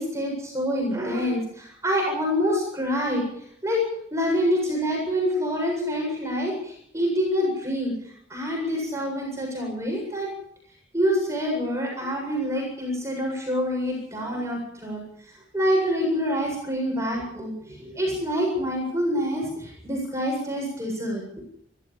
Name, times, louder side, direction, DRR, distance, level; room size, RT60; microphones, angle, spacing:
voice 1, 0.0-3.3 3.6-3.8 4.1-7.9 8.3-10.3 10.9-15.0 15.5-21.2, equal, 15° right, 0 dB, 7.6 m, -26 dB
29.5 x 13.5 x 7.3 m, 0.69 s
head